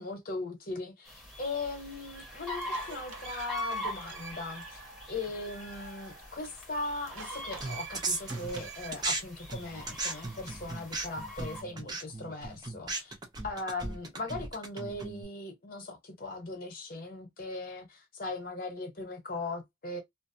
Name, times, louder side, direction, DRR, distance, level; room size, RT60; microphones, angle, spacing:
voice 1, 0.0-4.8 5.1-13.2 13.4-20.0, left 2 dB, 45° left, 0.9 m, -39 dB
sound 1, 1.1-11.6, left 1 dB, ahead, 0.8 m, -42 dB
sound 2, 1.6-1.7 2.3-4.6 5.0-5.1 7.0-9.1, right 7 dB, 90° right, 0.6 m, -47 dB
sound 3, 7.6-9.2 9.5-15.2, right 3 dB, 20° right, 0.5 m, -36 dB
2.4 x 2.2 x 2.6 m
head